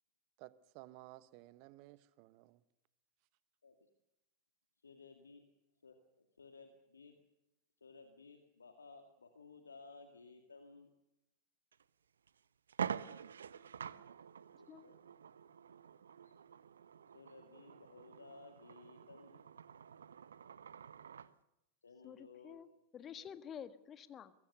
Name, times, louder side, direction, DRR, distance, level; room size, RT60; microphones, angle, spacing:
voice 1, 0.4-2.6, right 18 dB, 45° right, 16 dB, 1.2 m, -56 dB
voice 2, 4.8-5.4 5.8-7.2 7.8-10.9 14.6-15.0 16.2-16.3 17.1-19.4 21.8-22.6, left 4 dB, 75° left, 6 dB, 2.0 m, -57 dB
sound 1, 11.7-11.8 12.3-12.4 12.7-21.3, right 7 dB, 70° right, 0.7 m, -47 dB
voice 3, 22.0-24.3, left 8 dB, 25° left, 12 dB, 1.5 m, -50 dB
23.5 x 21.5 x 6.9 m, 0.92 s
figure-of-eight pair, 90°, 0 cm